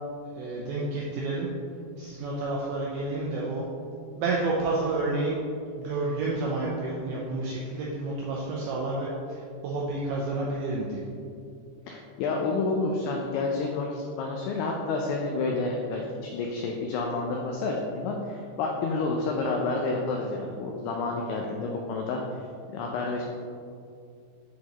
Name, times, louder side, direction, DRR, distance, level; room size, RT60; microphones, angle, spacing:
voice 1, 0.4-1.5 2.0-3.6 4.2-5.4 5.8-11.0, right 2 dB, 90° right, -4 dB, 2.2 m, -30 dB
voice 2, 11.9-22.4 22.7-23.2, left 3 dB, 85° left, 0 dB, 2.2 m, -29 dB
9.4 x 3.9 x 2.9 m, 2.4 s
omnidirectional pair, 5.1 m